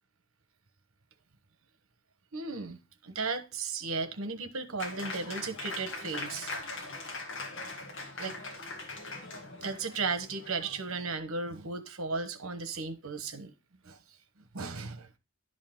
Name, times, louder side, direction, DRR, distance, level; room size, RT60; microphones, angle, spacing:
voice 1, 2.3-2.8 3.0-6.5 8.2-8.4 9.6-13.5 13.9-14.0 14.5-15.1, right 4 dB, 75° right, 1.1 m, -35 dB
Applause, 4.8-11.2, left 3 dB, 55° left, 1.8 m, -41 dB
11.0 x 5.4 x 3.7 m
head